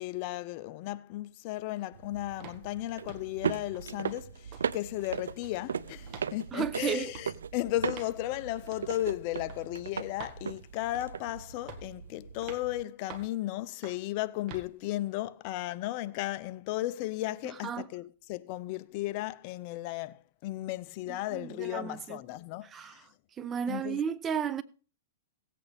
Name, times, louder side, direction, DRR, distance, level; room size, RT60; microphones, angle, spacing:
voice 1, 0.0-23.1 23.7-24.0, left 16 dB, 45° left, 0.6 m, -35 dB
sound 1, 1.9-12.8, right 7 dB, 90° right, 0.5 m, -38 dB
sound 2, 2.4-2.6 3.1-3.3 3.7-4.2 4.5-4.7 5.0-5.6 6.1-6.3 7.1-7.3 7.9-8.2 8.7-8.9 9.5-9.6 10.2-10.4 10.9-11.2 11.7-12.0 12.4-12.7 13.1-13.4 13.8-14.1 14.5-14.7, right 6 dB, 35° right, 1.7 m, -47 dB
voice 2, 6.5-7.1 17.4-17.9 21.1-22.2 22.6-23.0 23.4-24.6, right 8 dB, 20° right, 0.6 m, -34 dB
17.0 x 8.5 x 3.5 m
hypercardioid pair, 135°, 0 cm